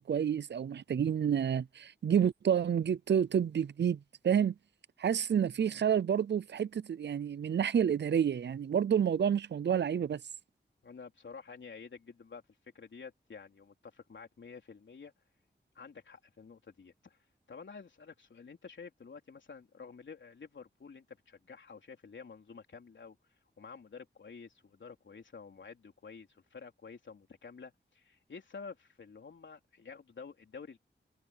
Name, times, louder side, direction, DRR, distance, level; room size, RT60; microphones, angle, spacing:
voice 1, 0.0-4.5 5.0-10.2, right 8 dB, 70° right, 0.5 m, -29 dB
voice 2, 10.8-12.4 12.7-15.1 15.8-17.2 17.5-23.2 23.6-30.8, left 5 dB, 85° left, 3.8 m, -50 dB
wide cardioid pair, 90°, 19 cm